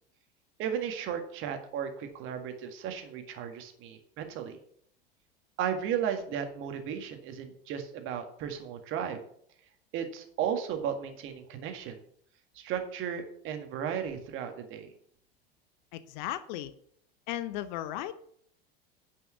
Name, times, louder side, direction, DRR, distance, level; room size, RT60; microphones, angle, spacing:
voice 1, 0.6-4.6 5.6-9.2 9.9-12.0 12.6-14.9, right 8 dB, 40° right, 6 dB, 1.8 m, -35 dB
voice 2, 15.9-16.7 17.3-18.1, left 13 dB, 50° left, 14 dB, 0.8 m, -35 dB
9.7 x 5.5 x 6.9 m, 0.64 s
figure-of-eight pair, 80°, 30 cm